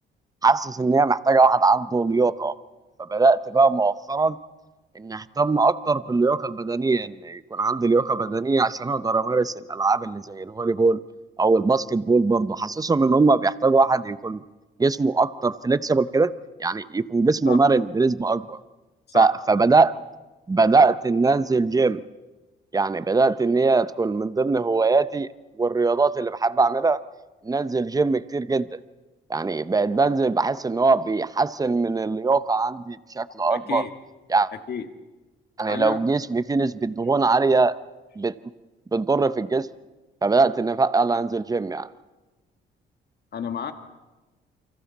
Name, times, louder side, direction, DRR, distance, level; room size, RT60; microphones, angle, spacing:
voice 1, 0.4-2.5 3.0-4.4 4.9-11.0 11.4-14.4 14.8-16.3 16.6-18.6 19.1-19.9 20.5-22.0 22.7-25.3 25.6-27.0 27.4-28.7 29.3-33.8 34.3-34.5 35.6-37.8 38.2-38.3 38.9-39.7 40.2-41.9, right 3 dB, 20° right, 14 dB, 0.7 m, -21 dB
voice 2, 33.5-33.9 34.7-34.9 35.7-36.0 43.3-43.7, left 7 dB, 55° left, 7 dB, 1.8 m, -31 dB
28.5 x 25.0 x 4.2 m, 1.1 s
cardioid pair, 90°, 20 cm